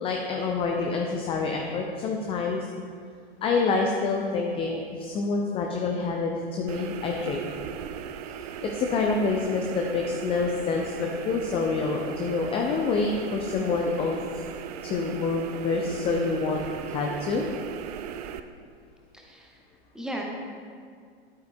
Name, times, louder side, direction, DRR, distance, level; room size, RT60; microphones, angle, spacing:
voice 1, 0.0-2.7 3.4-7.4 8.4-14.2 14.8-16.6 16.9-17.4, left 4 dB, 15° left, 1 dB, 0.5 m, -27 dB
sound 1, 6.7-18.4, right 8 dB, 40° right, 0.4 m, -38 dB
voice 2, 19.1-19.6 19.9-20.2, right 1 dB, ahead, -1 dB, 0.9 m, -36 dB
11.5 x 8.4 x 2.2 m, 2.1 s
figure-of-eight pair, 95°, 33 cm